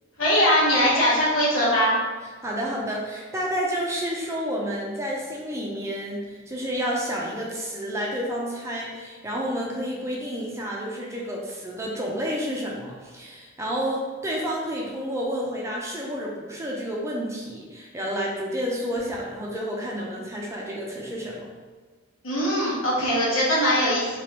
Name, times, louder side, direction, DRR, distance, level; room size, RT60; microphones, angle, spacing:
voice 1, 0.2-1.9 22.2-24.2, equal, 90° left, -7 dB, 1.4 m, -21 dB
voice 2, 2.4-21.5, equal, 15° right, -3 dB, 0.5 m, -30 dB
3.4 x 2.9 x 2.9 m, 1.4 s
head